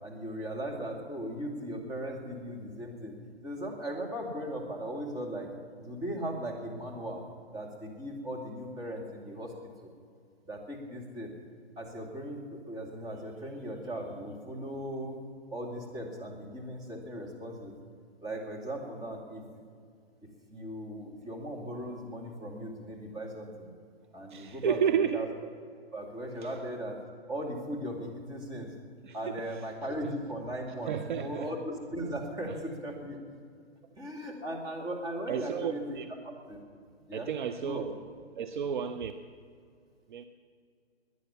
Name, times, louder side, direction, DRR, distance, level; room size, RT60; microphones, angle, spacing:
voice 1, 0.0-3.2 3.4-5.5 5.8-7.2 7.5-9.9 10.4-11.3 11.8-15.2 15.5-17.7 18.2-19.4 20.2-23.7 24.1-25.3 25.9-27.0 27.3-28.7 29.1-33.2 34.0-36.0 36.2-36.6 37.1-37.9, equal, 10° right, -1 dB, 2.4 m, -38 dB
voice 2, 24.3-25.2 29.0-29.3 30.9-31.5 35.3-36.1 37.1-37.9 38.4-39.1 40.1-40.2, right 8 dB, 45° right, 9 dB, 0.7 m, -31 dB
21.5 x 9.4 x 7.1 m, 2.3 s
hypercardioid pair, 150°, 33 cm